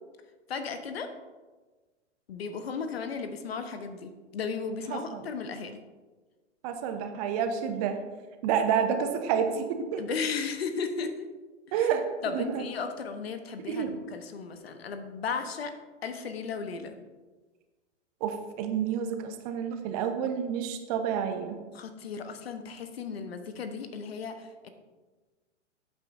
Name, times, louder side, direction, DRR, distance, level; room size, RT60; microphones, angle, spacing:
voice 1, 0.5-1.1 2.3-5.8 10.0-11.3 12.2-15.7 16.0-16.9 21.7-24.7, left 5 dB, 55° left, 8 dB, 1.1 m, -35 dB
voice 2, 4.9-5.3 6.6-8.0 8.4-10.0 11.7-12.0 12.3-12.6 13.7-14.0 18.2-21.6, right 7 dB, 30° right, 7 dB, 0.9 m, -29 dB
14.0 x 8.3 x 2.7 m, 1.3 s
figure-of-eight pair, 105°, 36 cm